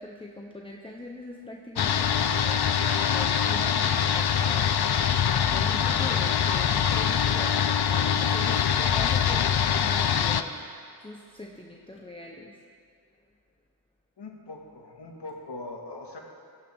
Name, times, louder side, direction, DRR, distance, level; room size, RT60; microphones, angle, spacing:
voice 1, 0.0-5.0 5.3-10.6 11.0-12.6, left 1 dB, 15° left, -1 dB, 1.0 m, -42 dB
sound 1, 1.8-10.4, left 8 dB, 70° left, 0.6 m, -24 dB
voice 2, 14.2-16.2, left 2 dB, 85° left, 0 dB, 1.9 m, -41 dB
17.5 x 13.5 x 3.7 m, 2.2 s
wide cardioid pair, 85°, 40 cm